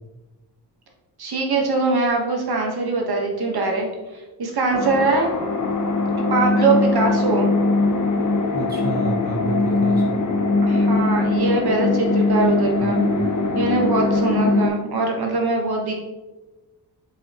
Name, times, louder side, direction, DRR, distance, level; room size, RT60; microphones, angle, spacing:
voice 1, 1.2-5.3 6.3-7.5 10.6-13.0 13.5-15.9, right 3 dB, 60° right, 1 dB, 1.2 m, -22 dB
sound 1, 4.7-14.7, left 3 dB, 45° left, 0.7 m, -21 dB
voice 2, 8.5-10.4 12.8-13.6, right 2 dB, 25° right, 1 dB, 0.8 m, -30 dB
7.2 x 5.0 x 2.9 m, 1.2 s
wide cardioid pair, 135°, 42 cm